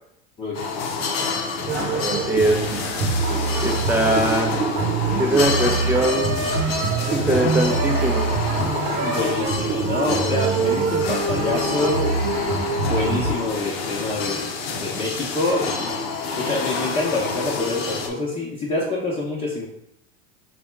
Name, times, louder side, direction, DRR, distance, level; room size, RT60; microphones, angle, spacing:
voice 1, 0.4-0.7 9.0-12.1 12.8-15.9 16.4-19.6, left 2 dB, 25° left, -6 dB, 1.0 m, -26 dB
sound 1, 0.5-18.1, left 4 dB, 75° left, 0.7 m, -28 dB
sound 2, 1.7-13.3, right 4 dB, 60° right, 0.8 m, -24 dB
voice 2, 1.9-2.7 3.6-4.5 5.2-6.5 7.1-8.3, right 1 dB, 5° right, 2 dB, 0.6 m, -22 dB
3.4 x 2.4 x 4.5 m, 0.75 s
hypercardioid pair, 95°, 31 cm